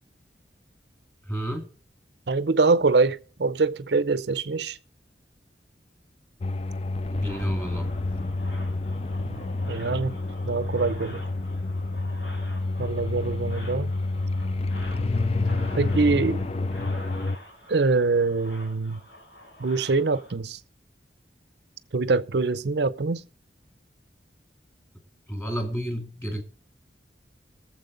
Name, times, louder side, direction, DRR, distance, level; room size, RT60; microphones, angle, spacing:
voice 1, 1.3-1.7 7.1-7.9 25.3-26.4, equal, 15° left, 2.2 m, -30 dB
voice 2, 2.3-4.8 9.2-10.1 10.4-11.2 12.8-13.9 15.8-16.4 17.7-19.0 19.6-20.6 21.9-23.2, right 3 dB, 70° right, 0.6 m, -24 dB
sound 1, 6.4-17.4, left 2 dB, 35° left, 0.4 m, -29 dB
sound 2, 7.3-20.3, left 1 dB, 80° left, 5.9 m, -47 dB
20.5 x 7.5 x 3.9 m
head